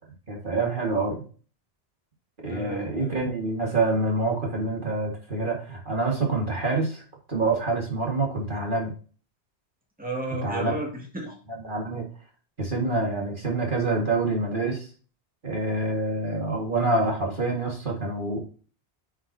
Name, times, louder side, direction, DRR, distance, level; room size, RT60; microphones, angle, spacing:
voice 1, 0.3-1.2 2.4-7.0 7.3-8.9 10.4-10.7 11.7-12.1 12.6-14.9 15.4-18.4, right 2 dB, 50° right, -1 dB, 2.0 m, -26 dB
voice 2, 2.4-3.2 10.0-11.4, right 1 dB, 10° right, 0 dB, 1.9 m, -33 dB
10.0 x 5.9 x 2.7 m, 0.39 s
omnidirectional pair, 1.1 m